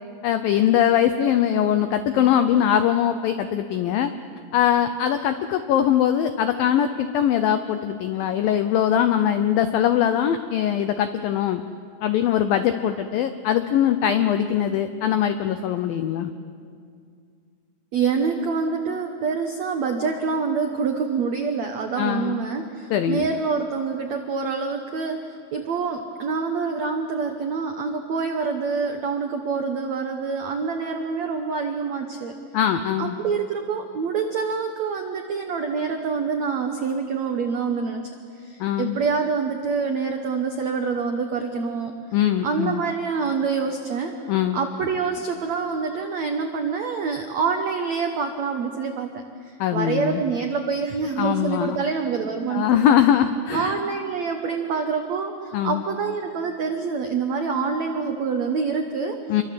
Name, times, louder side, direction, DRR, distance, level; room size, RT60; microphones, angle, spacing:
voice 1, 0.2-4.1 4.5-11.6 12.0-16.3 22.0-22.4 22.9-23.3 32.5-33.2 38.6-39.0 42.1-42.8 44.3-44.6 49.6-50.2 51.2-51.8 52.5-53.8 55.5-55.8 59.3-59.4, left 10 dB, 85° left, 9 dB, 2.0 m, -21 dB
voice 2, 17.9-32.3 33.0-38.0 38.3-41.9 42.4-52.9 53.5-59.2, right 5 dB, 85° right, 5 dB, 1.5 m, -26 dB
28.0 x 23.5 x 7.7 m, 2.3 s
omnidirectional pair, 5.2 m